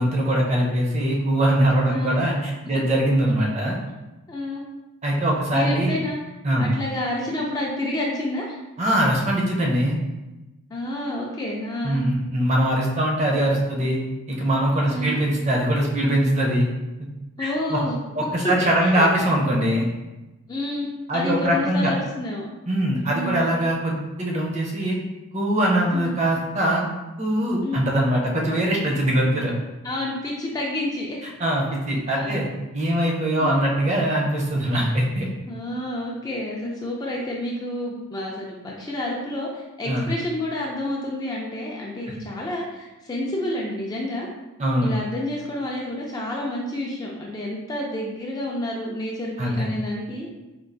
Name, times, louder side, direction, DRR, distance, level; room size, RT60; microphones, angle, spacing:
voice 1, 0.0-3.8 5.0-6.0 6.4-6.7 8.8-10.0 11.8-14.0 14.3-16.7 17.4-17.8 18.2-19.9 21.1-21.9 22.7-25.0 25.3-26.8 27.2-29.5 31.4-32.5 32.7-35.3 39.9-40.0 44.6-44.9 49.4-49.7, right 1 dB, 30° right, -2 dB, 0.6 m, -22 dB
voice 2, 4.3-4.6 5.5-6.2 6.6-8.6 10.7-12.0 14.9-15.2 17.4-17.9 18.4-19.0 20.5-22.5 23.1-23.4 25.9-26.1 27.6-27.9 29.8-31.2 32.2-32.5 33.4-33.7 35.4-44.3 44.8-50.3, left 1 dB, 15° left, -2 dB, 0.3 m, -29 dB
4.4 x 2.3 x 2.6 m, 1.1 s
head